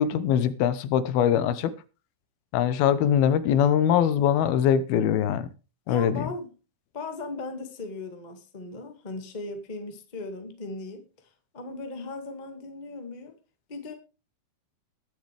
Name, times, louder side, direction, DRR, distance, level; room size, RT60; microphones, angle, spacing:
voice 1, 0.0-1.7 2.5-5.4 5.9-6.3, left 9 dB, 80° left, 2.8 m, -22 dB
voice 2, 5.9-6.5 6.9-11.1 11.5-13.4 13.7-13.9, left 2 dB, 25° left, 0.9 m, -37 dB
21.0 x 7.8 x 3.4 m
omnidirectional pair, 4.3 m